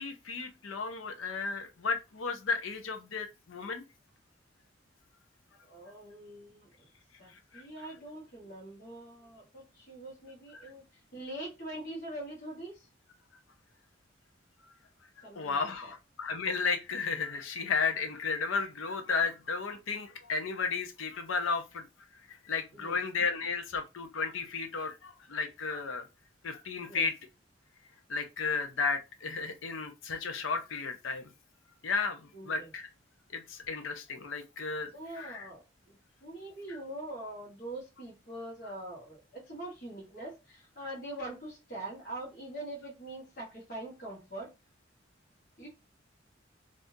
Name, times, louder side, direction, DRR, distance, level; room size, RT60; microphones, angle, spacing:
voice 1, 0.0-3.8 7.5-7.6 10.5-10.7 15.3-21.8 22.4-26.1 26.4-27.1 28.1-31.3 31.8-32.9 33.3-34.9 35.2-35.5 36.7-36.8, left 5 dB, 90° left, 0.6 m, -33 dB
voice 2, 5.6-6.7 7.2-10.8 11.1-12.9 15.2-15.9 22.7-22.9 26.9-27.1 32.3-32.7 34.9-35.9 36.2-44.5 45.6-45.7, right 1 dB, 45° left, 1.3 m, -43 dB
3.5 x 2.6 x 2.6 m
head